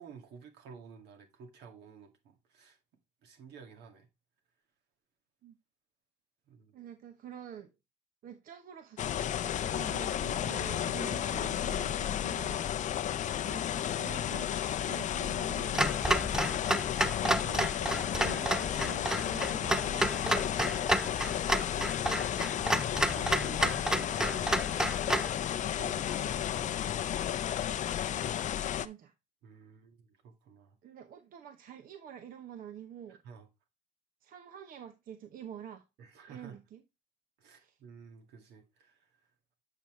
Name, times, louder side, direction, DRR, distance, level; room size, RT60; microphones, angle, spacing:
voice 1, 0.0-2.8 3.2-4.1 6.5-6.8 11.3-12.2 12.6-13.0 22.6-24.7 25.5-27.6 29.4-30.8 33.1-33.5 36.0-36.6 37.4-39.3, right 5 dB, 80° right, 2.0 m, -52 dB
voice 2, 6.7-7.7 8.2-12.7 13.1-13.7 14.0-15.8 17.2-20.6 28.8-29.1 30.8-33.2 34.2-35.9 36.3-36.8 37.5-37.8, right 9 dB, 60° right, 0.8 m, -47 dB
sound 1, 9.0-28.9, left 10 dB, 45° left, 0.5 m, -33 dB
Clock, 15.7-25.3, right 1 dB, 5° right, 0.3 m, -31 dB
8.0 x 5.7 x 3.1 m
cardioid pair, 110°, 17 cm